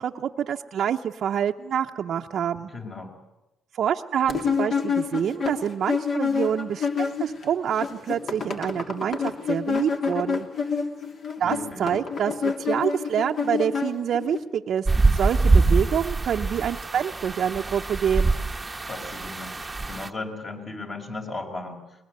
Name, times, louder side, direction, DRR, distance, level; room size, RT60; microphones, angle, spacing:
voice 1, 0.0-2.7 3.7-10.5 11.4-14.9 15.1-18.3, right 9 dB, 65° right, 3 dB, 0.8 m, -27 dB
voice 2, 2.6-3.2 11.4-12.0 18.8-21.8, left 3 dB, 40° left, 3 dB, 5.5 m, -36 dB
sound 1, 4.3-7.4 7.7-14.4, left 5 dB, 55° left, 3.1 m, -27 dB
sound 2, 14.9-20.1, right 3 dB, 20° right, 1.0 m, -24 dB
21.5 x 20.0 x 9.5 m, 0.96 s
cardioid pair, 90°, 0 cm